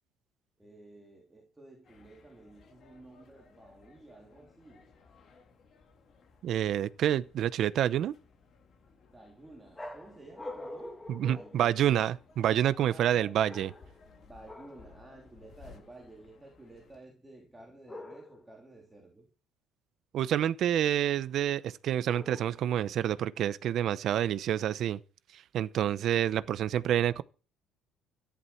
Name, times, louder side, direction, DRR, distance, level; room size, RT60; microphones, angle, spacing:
voice 1, 0.6-4.9 9.1-11.8 12.8-13.4 14.2-19.3, right 2 dB, 10° right, 3.2 m, -53 dB
sound 1, 1.8-17.0, left 4 dB, 35° left, 3.4 m, -59 dB
voice 2, 6.4-8.1 11.1-13.7 20.1-25.0 25.3-27.2, right 11 dB, 45° right, 0.8 m, -28 dB
sound 2, 9.7-12.3 13.4-14.1 14.4-14.9 17.9-18.5 22.1-22.8, left 1 dB, 10° left, 2.2 m, -45 dB
14.5 x 11.0 x 5.8 m
cardioid pair, 175°, 0 cm